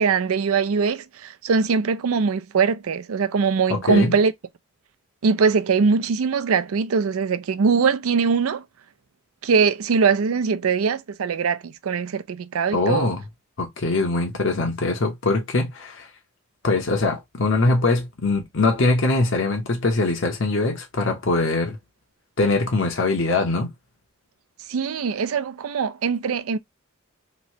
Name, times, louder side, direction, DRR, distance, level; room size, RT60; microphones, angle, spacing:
voice 1, 0.0-4.3 5.2-8.6 9.4-13.1 24.7-26.6, right 5 dB, 85° right, 0.4 m, -22 dB
voice 2, 3.7-4.1 12.7-13.2 13.6-16.1 16.6-21.8 22.4-23.7, left 3 dB, 65° left, 0.9 m, -22 dB
3.1 x 2.7 x 3.0 m
head